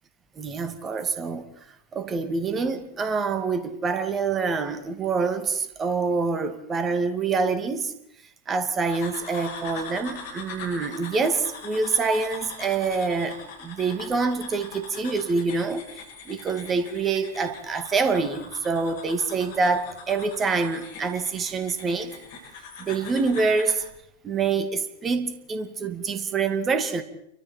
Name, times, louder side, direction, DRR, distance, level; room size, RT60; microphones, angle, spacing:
voice 1, 0.4-1.4 1.9-7.9 8.5-22.1 22.8-23.8 24.2-27.0, right 4 dB, 20° right, 2.4 m, -26 dB
sound 1, 8.9-23.8, left 4 dB, 55° left, 7.6 m, -42 dB
29.0 x 25.0 x 4.5 m
figure-of-eight pair, 90°, 0 cm